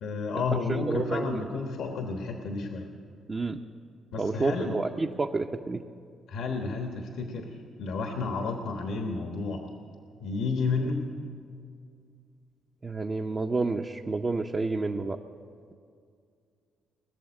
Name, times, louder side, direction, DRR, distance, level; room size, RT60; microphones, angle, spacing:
voice 1, 0.0-2.9 4.1-4.8 6.3-9.6 10.2-11.0, left 4 dB, 80° left, 3 dB, 1.2 m, -31 dB
voice 2, 0.9-1.4 3.3-3.6 4.2-5.8 12.8-15.2, right 3 dB, 30° right, 3 dB, 0.6 m, -29 dB
20.0 x 7.1 x 9.8 m, 2.3 s
cardioid pair, 90°, 0 cm